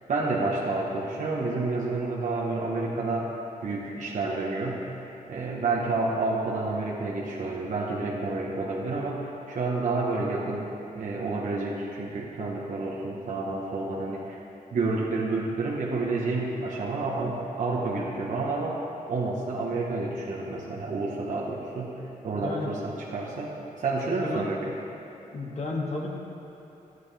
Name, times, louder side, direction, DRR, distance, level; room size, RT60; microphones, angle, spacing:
voice 1, 0.1-3.3 3.6-14.4 14.7-22.0 22.2-23.5 23.8-24.7, right 3 dB, 55° right, -5 dB, 1.2 m, -29 dB
voice 2, 22.3-22.7 24.2-24.5 25.3-26.1, left 2 dB, 45° left, -2 dB, 1.7 m, -32 dB
13.5 x 9.5 x 3.4 m, 3.0 s
cardioid pair, 105°, 15 cm